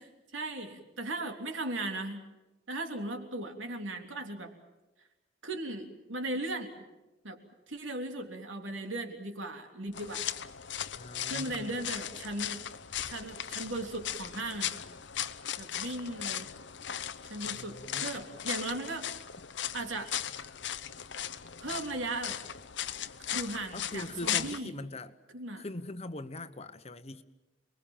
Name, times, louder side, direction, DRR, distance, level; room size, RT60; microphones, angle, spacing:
voice 1, 0.0-2.2 2.7-4.5 5.4-6.7 7.2-7.4 7.7-10.2 11.3-12.6 13.0-14.7 15.6-16.5 17.3-19.1 19.7-20.1 21.6-22.4 23.3-24.7 25.3-25.6, right 2 dB, 80° right, 5 dB, 3.3 m, -37 dB
sound 1, 9.9-24.6, left 10 dB, 65° left, 0.9 m, -37 dB
voice 2, 11.0-11.7 17.5-18.1 23.7-25.1 25.6-27.2, left 2 dB, 35° left, 10 dB, 1.1 m, -41 dB
29.0 x 21.5 x 7.4 m, 1.1 s
head